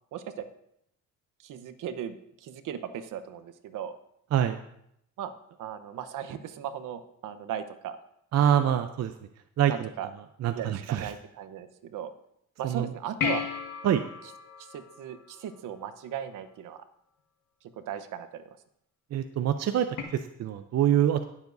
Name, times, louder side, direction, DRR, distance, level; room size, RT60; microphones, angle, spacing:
voice 1, 0.1-0.4 1.4-4.0 5.2-5.3 5.6-8.0 8.4-8.8 9.7-10.1 10.5-12.1 12.6-13.4 14.2-14.3 14.6-16.8 17.8-18.4, right 9 dB, 65° right, 11 dB, 1.0 m, -37 dB
voice 2, 8.3-9.1 9.6-9.9 10.4-11.1 12.6-12.9 13.8-14.0 19.1-19.9 20.4-21.2, right 10 dB, 50° right, 8 dB, 0.6 m, -25 dB
sound 1, 13.2-15.9 20.0-20.1, left 7 dB, 70° left, 1.8 m, -34 dB
17.5 x 7.2 x 2.6 m, 0.75 s
cardioid pair, 95°, 33 cm